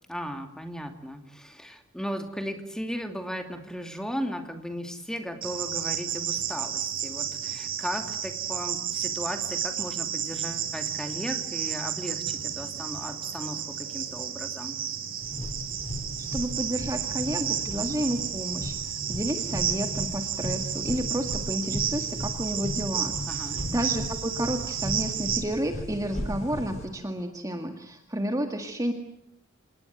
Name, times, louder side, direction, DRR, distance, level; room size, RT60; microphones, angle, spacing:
voice 1, 0.1-14.8 23.3-23.6, equal, 5° left, 6 dB, 2.7 m, -36 dB
Cricket, 5.4-25.4, right 9 dB, 45° right, 5.0 m, -32 dB
sound 1, 15.2-26.8, left 1 dB, 35° left, 4.6 m, -36 dB
voice 2, 16.2-28.9, right 1 dB, 15° right, 5 dB, 1.9 m, -31 dB
27.5 x 20.0 x 9.5 m, 0.76 s
head